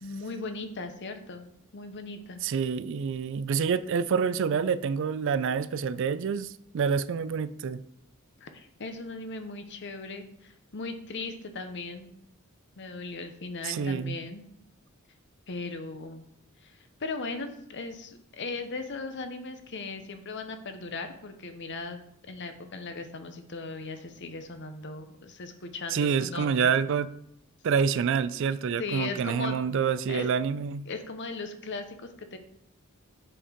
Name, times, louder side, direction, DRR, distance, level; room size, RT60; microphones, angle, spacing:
voice 1, 0.0-2.4 8.4-12.1 12.8-14.4 15.5-16.2 16.6-22.0 22.3-26.7 28.8-29.6 30.1-30.3 30.9-31.9 32.2-32.4, left 3 dB, 55° left, 8 dB, 0.8 m, -38 dB
voice 2, 2.4-7.8 13.6-14.2 25.9-27.1 27.6-30.9, right 6 dB, 60° right, 16 dB, 0.4 m, -27 dB
7.6 x 4.3 x 5.0 m, 0.73 s
head